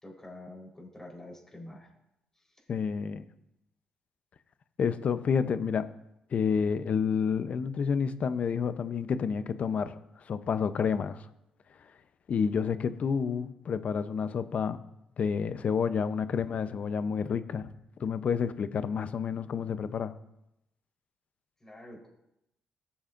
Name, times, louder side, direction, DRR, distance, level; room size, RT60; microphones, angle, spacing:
voice 1, 0.0-1.9 21.6-22.1, left 1 dB, 20° left, 4.0 m, -46 dB
voice 2, 2.7-3.3 4.8-5.8 6.3-9.9 10.3-11.2 12.3-14.8 15.2-17.7 18.0-20.1, left 6 dB, 55° left, 0.6 m, -29 dB
15.5 x 7.0 x 2.6 m
supercardioid pair, 65°, 3 cm